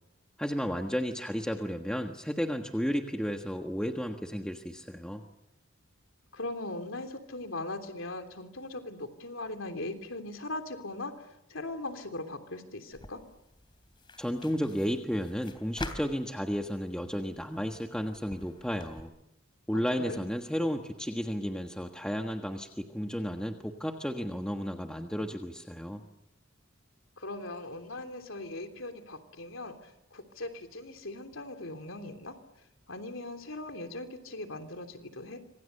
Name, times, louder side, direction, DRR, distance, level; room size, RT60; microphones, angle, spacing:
voice 1, 0.4-5.2 14.2-19.1 19.7-26.0, equal, 5° left, 3 dB, 1.5 m, -33 dB
voice 2, 6.3-13.2 19.7-20.2 27.2-32.4 32.9-35.4, left 2 dB, 85° left, 7 dB, 3.3 m, -40 dB
sound 1, 12.9-19.0, left 2 dB, 25° left, 2.9 m, -47 dB
26.5 x 25.5 x 6.8 m, 0.83 s
head